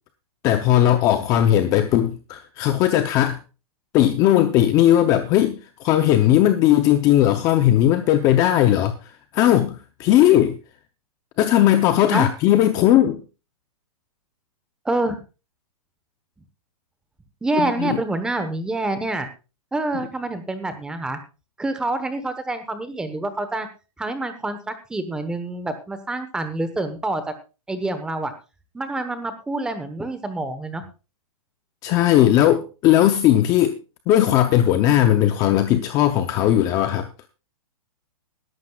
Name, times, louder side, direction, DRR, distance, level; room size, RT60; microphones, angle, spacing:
voice 1, 0.4-3.4 3.9-8.9 9.3-10.6 11.4-13.2 17.6-18.0 31.8-33.8 34.1-37.1, left 12 dB, 20° left, 0.6 m, -18 dB
voice 2, 14.8-15.2 17.4-19.3 19.7-21.2 21.6-23.7 24.0-27.2 27.7-28.3 28.7-30.8, right 2 dB, 5° right, 1.1 m, -27 dB
20.5 x 11.5 x 2.4 m
hypercardioid pair, 165°, 19 cm